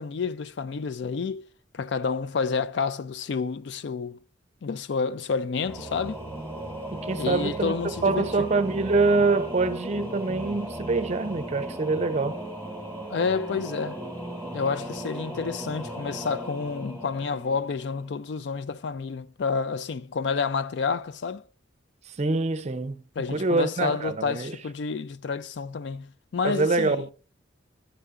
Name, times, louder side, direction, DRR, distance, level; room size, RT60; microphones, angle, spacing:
voice 1, 0.0-1.4 1.7-4.2 4.6-6.2 7.2-8.5 13.1-14.0 14.5-21.4 23.2-27.1, left 5 dB, 65° left, 0.4 m, -29 dB
Singing / Musical instrument, 5.6-18.2, right 1 dB, 10° left, 1.7 m, -37 dB
voice 2, 6.9-7.7 8.0-12.4 22.2-23.0 23.3-24.6 26.4-27.1, right 3 dB, 35° right, 0.5 m, -25 dB
10.0 x 6.8 x 3.6 m
head